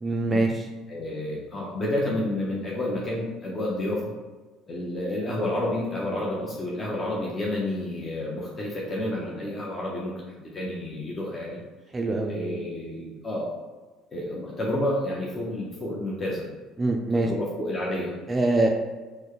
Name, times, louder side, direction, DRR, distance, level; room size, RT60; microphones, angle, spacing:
voice 1, 0.0-0.7 11.9-12.6 16.8-17.3 18.3-18.7, right 2 dB, 20° right, 2 dB, 0.4 m, -24 dB
voice 2, 0.9-4.1 4.7-11.6 12.3-13.5 14.1-16.5 17.1-18.1, left 1 dB, 30° left, -5 dB, 0.8 m, -30 dB
4.5 x 2.2 x 3.1 m, 1.3 s
hypercardioid pair, 70°, 0 cm